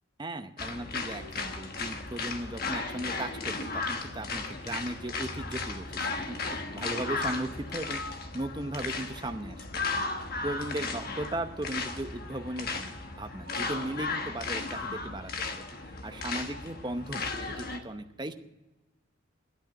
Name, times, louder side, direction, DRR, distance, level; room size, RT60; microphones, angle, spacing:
voice 1, 0.2-10.0 10.4-15.3 15.9-18.3, right 1 dB, 20° right, 7 dB, 0.8 m, -37 dB
sound 1, 0.6-17.8, left 3 dB, 50° left, 1.2 m, -35 dB
11.5 x 8.9 x 8.8 m, 1.0 s
head